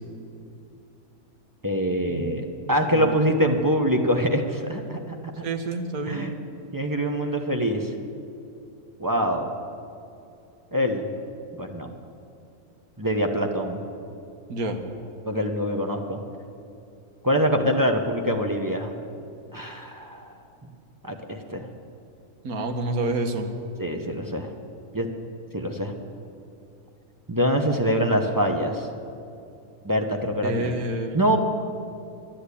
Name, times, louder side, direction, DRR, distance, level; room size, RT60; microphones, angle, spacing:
voice 1, 1.6-5.1 6.1-6.3 6.7-7.9 9.0-9.5 10.7-11.1 11.6-11.9 13.0-13.8 15.2-16.2 17.2-18.9 19.5-20.3 21.0-21.7 23.8-24.5 24.9-25.1 25.5-25.9 27.3-28.9 29.8-30.7 31.1-31.4, equal, 20° right, 3 dB, 0.7 m, -24 dB
voice 2, 5.4-6.3 14.5-14.8 22.4-23.5 30.4-31.1, right 2 dB, 80° right, 5 dB, 1.6 m, -28 dB
11.5 x 10.5 x 8.4 m, 2.7 s
omnidirectional pair, 1.5 m